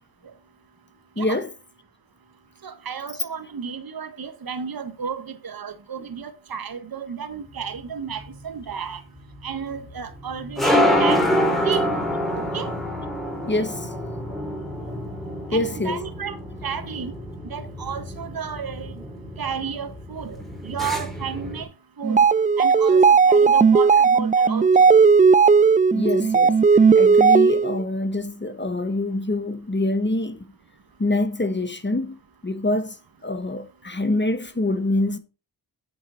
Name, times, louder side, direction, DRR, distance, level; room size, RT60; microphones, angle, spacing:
voice 1, 1.2-1.5 13.5-13.9 15.5-16.1 25.9-26.6 26.9-30.5 31.0-32.2 32.4-33.0 33.2-35.2, left 2 dB, 25° left, 1.2 m, -25 dB
voice 2, 2.6-9.0 9.4-12.1 12.3-12.7 15.5-16.4 16.6-17.1 17.4-19.0 19.4-20.4 20.6-21.7 22.0-22.2 22.6-24.9, right 7 dB, 50° right, 1.5 m, -32 dB
sound 1, 7.6-21.6, equal, ahead, 2.9 m, -27 dB
sound 2, 22.0-27.8, right 5 dB, 20° right, 0.4 m, -15 dB
8.6 x 4.0 x 6.4 m
supercardioid pair, 40°, 46 cm